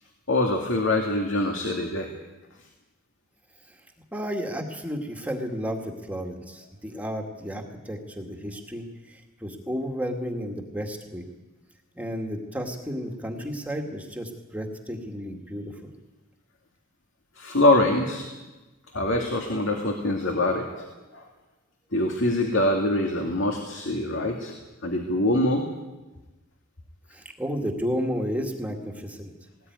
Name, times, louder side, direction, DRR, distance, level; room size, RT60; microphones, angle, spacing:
voice 1, 0.3-2.1 17.4-18.3 18.9-20.9 21.1-21.3 21.9-24.5 24.8-25.7, left 1 dB, 60° left, 2 dB, 2.4 m, -24 dB
voice 2, 4.1-11.2 12.0-15.9 27.1-29.3, equal, 5° right, 2 dB, 2.1 m, -32 dB
20.0 x 19.0 x 9.5 m, 1.1 s
head